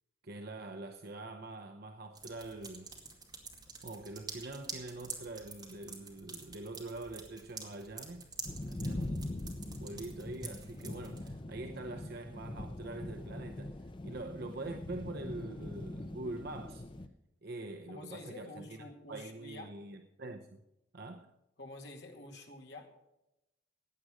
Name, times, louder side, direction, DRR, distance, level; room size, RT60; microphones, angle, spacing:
voice 1, 0.2-2.9 3.8-8.3 8.6-16.8 17.4-20.6 20.9-21.3, right 2 dB, 50° right, 0.7 m, -44 dB
sound 1, 2.1-11.3, right 4 dB, 20° right, 2.3 m, -48 dB
sound 2, 8.5-17.1, left 1 dB, 25° left, 0.6 m, -42 dB
voice 2, 17.9-19.7 21.6-22.9, left 2 dB, 60° left, 2.4 m, -48 dB
16.0 x 9.7 x 5.0 m
head